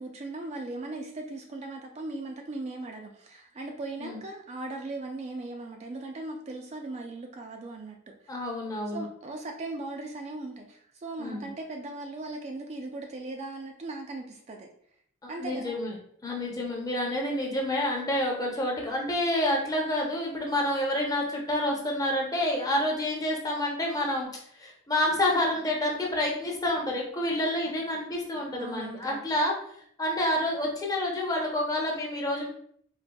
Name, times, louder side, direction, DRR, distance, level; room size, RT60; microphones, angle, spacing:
voice 1, 0.0-8.0 8.2-8.3 8.9-14.7 15.3-15.8 28.6-29.2, right 2 dB, 30° right, 2 dB, 0.3 m, -38 dB
voice 2, 8.3-9.0 11.2-11.5 15.2-15.9 16.2-24.3 24.6-29.5 30.0-32.5, left 1 dB, 20° left, -1 dB, 0.6 m, -28 dB
3.9 x 2.5 x 2.2 m, 0.64 s
head